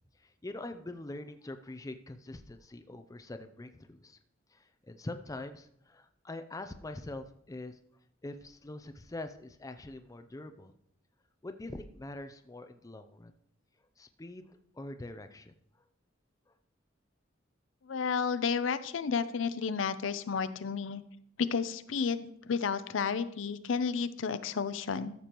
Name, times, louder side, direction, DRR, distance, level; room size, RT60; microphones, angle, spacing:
voice 1, 0.2-4.2 4.5-7.8 8.2-10.7 11.4-13.3 14.0-15.5, left 2 dB, 15° left, 8 dB, 0.4 m, -44 dB
voice 2, 17.8-21.0 21.5-25.1, left 6 dB, 80° left, 13 dB, 0.5 m, -32 dB
13.5 x 6.8 x 3.0 m, 0.71 s
head